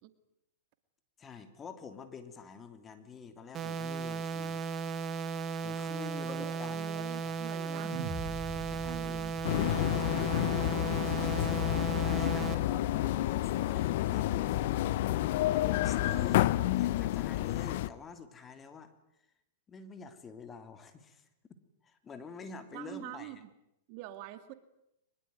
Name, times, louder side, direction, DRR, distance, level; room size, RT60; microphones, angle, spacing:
voice 1, 1.2-4.6 5.6-8.1 8.6-9.2 9.9-10.3 12.0-14.7 15.5-18.9 19.7-21.2 21.8-23.4, left 5 dB, 20° left, 9 dB, 3.0 m, -47 dB
sound 1, 3.5-12.5, right 5 dB, 25° right, 2.0 m, -36 dB
voice 2, 6.3-8.2 8.8-9.4 10.1-11.0 16.0-16.4 22.7-23.5 23.9-24.5, right 15 dB, 50° right, 11 dB, 2.3 m, -46 dB
sound 2, 7.8-12.2, right 3 dB, 5° right, 4.4 m, -45 dB
sound 3, 9.4-17.9, left 15 dB, 60° left, 1.0 m, -29 dB
23.5 x 22.0 x 9.5 m, 0.83 s
hypercardioid pair, 120°, 0 cm